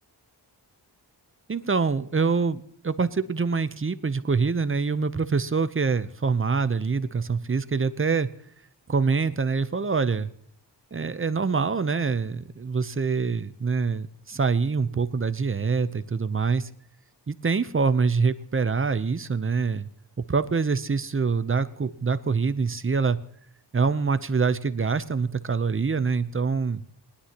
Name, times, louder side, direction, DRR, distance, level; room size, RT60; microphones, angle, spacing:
voice 1, 1.5-8.3 8.9-10.3 10.9-16.7 17.3-19.9 20.2-23.2 23.7-26.8, right 5 dB, 30° right, 13 dB, 0.7 m, -25 dB
20.0 x 11.5 x 2.9 m, 0.64 s
wide cardioid pair, 65°, 42 cm